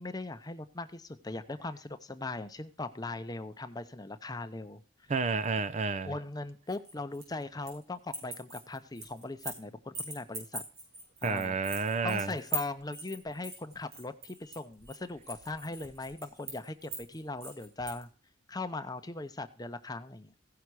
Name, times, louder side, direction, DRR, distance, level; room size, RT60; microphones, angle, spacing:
voice 1, 0.0-4.8 6.0-10.6 11.2-11.6 12.0-18.1 18.5-20.3, left 2 dB, 20° left, 0.7 m, -39 dB
voice 2, 5.1-6.1 11.2-12.3, right 4 dB, 35° right, 0.5 m, -30 dB
sound 1, 6.7-7.8 8.1-9.6 9.9-18.0, right 3 dB, 55° right, 7.9 m, -41 dB
16.0 x 5.8 x 4.7 m
head